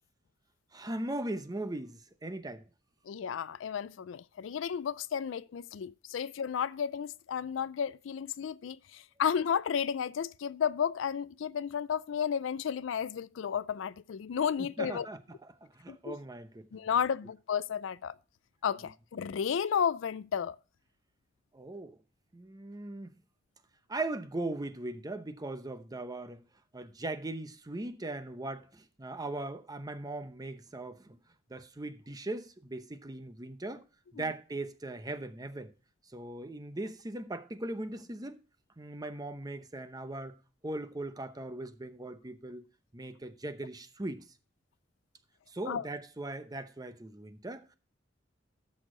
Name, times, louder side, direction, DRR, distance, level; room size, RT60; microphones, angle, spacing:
voice 1, 0.7-2.7 14.6-16.8 21.5-22.0 22.3-23.2 23.9-26.4 26.7-31.2 31.5-33.8 34.1-35.7 36.1-38.4 38.8-40.4 40.6-42.6 42.9-44.2 45.5-47.7, right 2 dB, 20° right, 0.8 m, -39 dB
voice 2, 3.1-15.1 15.9-16.2 16.7-18.1 18.6-20.6 45.7-45.8, left 7 dB, 70° left, 0.4 m, -32 dB
12.5 x 6.5 x 3.8 m
head